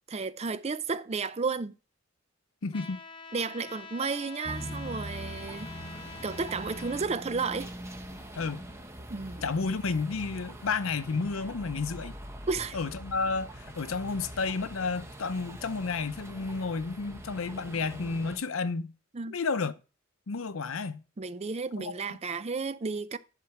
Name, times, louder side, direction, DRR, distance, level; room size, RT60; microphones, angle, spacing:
voice 1, 0.1-1.7 3.3-5.7 6.2-7.7 9.1-9.4 12.5-12.8 19.1-19.3 21.2-23.2, right 4 dB, 30° right, 0.5 m, -32 dB
voice 2, 2.6-3.0 8.4-8.6 9.4-12.1 12.7-18.9 19.3-19.7 20.3-21.0 21.8-21.9, left 4 dB, 90° left, 0.7 m, -31 dB
Trumpet, 2.7-7.0, left 4 dB, 25° left, 0.7 m, -45 dB
sound 1, 4.4-18.4, right 1 dB, 15° right, 1.0 m, -43 dB
11.0 x 4.5 x 5.9 m
head